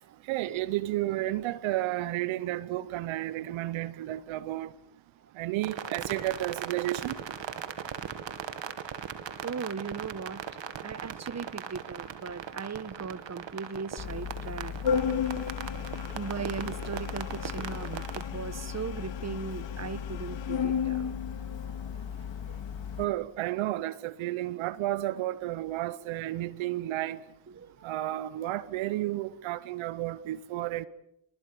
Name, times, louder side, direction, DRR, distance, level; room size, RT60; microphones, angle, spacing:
voice 1, 0.3-4.7 5.4-7.2 23.0-27.2 27.8-30.9, right 15 dB, 90° right, 0.9 m, -32 dB
sound 1, 5.6-18.2, right 8 dB, 70° right, 2.4 m, -39 dB
voice 2, 9.4-10.5 10.8-14.7 15.8-21.1 27.5-28.1 30.6-30.7, right 5 dB, 35° right, 1.4 m, -38 dB
Organ, 14.0-23.0, left 7 dB, 70° left, 2.6 m, -34 dB
28.5 x 21.0 x 7.1 m
supercardioid pair, 45°, 46 cm